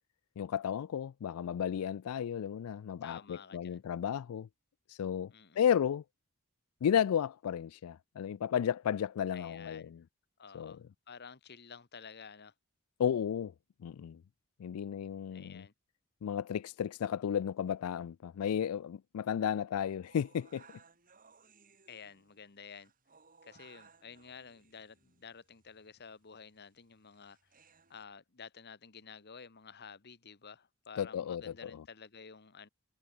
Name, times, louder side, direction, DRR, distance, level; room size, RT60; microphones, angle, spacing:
voice 1, 0.4-4.5 4.9-5.3 5.6-6.0 6.8-10.0 10.5-10.8 13.0-13.5 13.8-14.2 14.6-15.6 16.2-20.6 31.0-31.7, left 8 dB, 80° left, 0.3 m, -33 dB
voice 2, 3.0-3.8 5.3-5.6 9.3-9.9 10.4-12.5 15.3-15.7 21.9-22.9 23.4-27.4 27.9-32.7, left 6 dB, 50° left, 1.2 m, -51 dB
sound 1, 20.0-28.0, right 5 dB, 40° right, 7.3 m, -64 dB
head